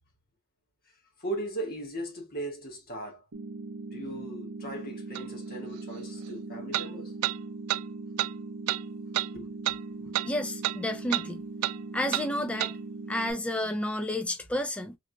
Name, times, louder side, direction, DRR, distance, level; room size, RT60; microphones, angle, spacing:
voice 1, 1.2-3.2 3.9-7.2 9.3-10.1, right 1 dB, 45° left, 1.7 m, -38 dB
sound 1, 3.3-13.3, right 3 dB, 65° right, 0.8 m, -40 dB
sound 2, 5.2-5.3 6.7-6.9 7.2-7.4 7.7-7.8 8.2-8.3 8.7-8.8 9.1-9.3 9.7-9.8 10.1-10.3 10.6-10.8 11.1-11.3 11.6-11.8 12.1-12.3 12.6-12.7, right 14 dB, 85° right, 0.3 m, -28 dB
voice 2, 10.2-11.4 11.9-12.7 13.1-15.0, left 1 dB, 5° left, 0.4 m, -31 dB
3.6 x 3.1 x 2.2 m
head